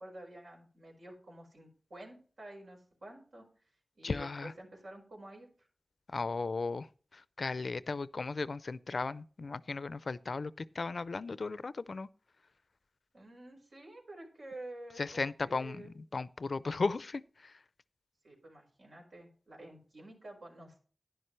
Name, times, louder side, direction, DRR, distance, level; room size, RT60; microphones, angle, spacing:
voice 1, 0.0-3.4 4.0-5.7 13.1-15.9 18.2-20.8, right 1 dB, 90° right, 4.7 m, -50 dB
voice 2, 4.0-4.5 6.1-12.1 15.0-17.5, left 3 dB, 75° left, 0.4 m, -36 dB
11.0 x 10.5 x 3.2 m
wide cardioid pair, 55°, 0 cm